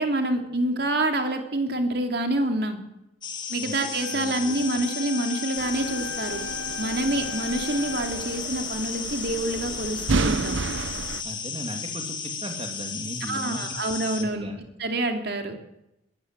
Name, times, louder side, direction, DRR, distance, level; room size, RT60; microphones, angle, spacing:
voice 1, 0.0-2.8 3.5-6.4 6.8-10.6 13.3-14.5 14.8-15.6, right 1 dB, 55° right, 4 dB, 2.9 m, -27 dB
sound 1, 3.2-14.2, left 6 dB, 25° left, 2.2 m, -34 dB
Wind instrument woodwind instrument, 4.0-8.4, left 6 dB, 85° left, 2.2 m, -38 dB
sound 2, 5.6-11.2, right 3 dB, 75° right, 0.8 m, -31 dB
voice 2, 11.2-13.6 14.2-14.6, equal, 30° right, 4 dB, 2.7 m, -36 dB
21.5 x 14.0 x 9.1 m, 0.87 s
head